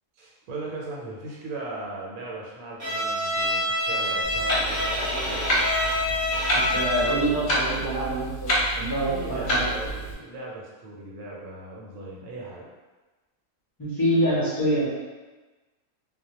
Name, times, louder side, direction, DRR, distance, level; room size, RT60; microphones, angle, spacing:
voice 1, 0.2-5.4 9.1-12.7, right 2 dB, 80° right, -4 dB, 1.0 m, -38 dB
Bowed string instrument, 2.8-7.4, left 1 dB, 50° right, 0.5 m, -27 dB
Clock, 4.2-10.1, equal, 60° left, 0.8 m, -28 dB
voice 2, 6.5-9.7 13.8-14.9, right 1 dB, 30° left, -9 dB, 0.4 m, -26 dB
2.2 x 2.1 x 2.8 m, 1.2 s
omnidirectional pair, 1.4 m